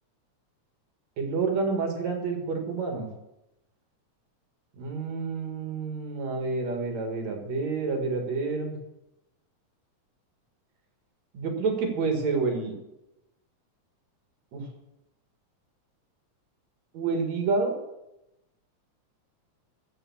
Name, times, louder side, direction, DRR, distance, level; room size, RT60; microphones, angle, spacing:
voice 1, 1.2-3.1 4.7-8.8 11.3-12.8 14.5-14.7 16.9-17.8, right 4 dB, 65° right, 3 dB, 3.1 m, -28 dB
14.5 x 5.5 x 7.2 m, 0.90 s
omnidirectional pair, 3.4 m